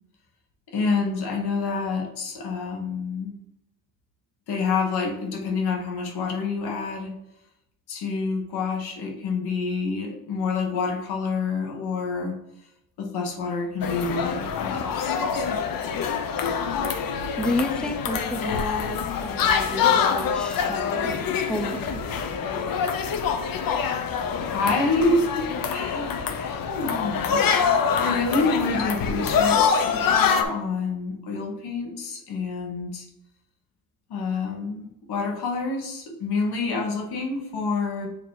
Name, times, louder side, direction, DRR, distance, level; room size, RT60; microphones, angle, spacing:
voice 1, 0.7-3.4 4.5-7.1 7.9-12.3 13.0-15.6 24.5-27.4 28.0-33.0 34.1-38.1, left 4 dB, 85° left, 0 dB, 1.5 m, -28 dB
sound 1, 13.8-30.4, left 6 dB, 60° left, 0.8 m, -25 dB
voice 2, 17.4-22.0, left 1 dB, ahead, 5 dB, 0.7 m, -31 dB
7.0 x 3.0 x 4.7 m, 0.85 s
cardioid pair, 95°, 37 cm